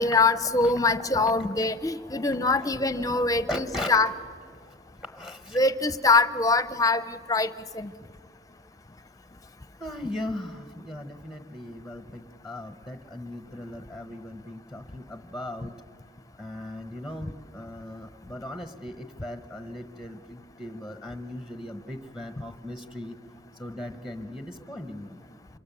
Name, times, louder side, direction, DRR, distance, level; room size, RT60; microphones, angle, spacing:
voice 1, 0.0-4.1 5.5-7.5 7.7-7.9, left 3 dB, 20° left, 13 dB, 0.7 m, -23 dB
voice 2, 1.0-3.9 5.1-5.6 9.8-15.8 16.4-23.2 23.6-25.2, left 1 dB, 5° right, 9 dB, 1.0 m, -38 dB
27.0 x 24.0 x 6.9 m, 2.3 s
head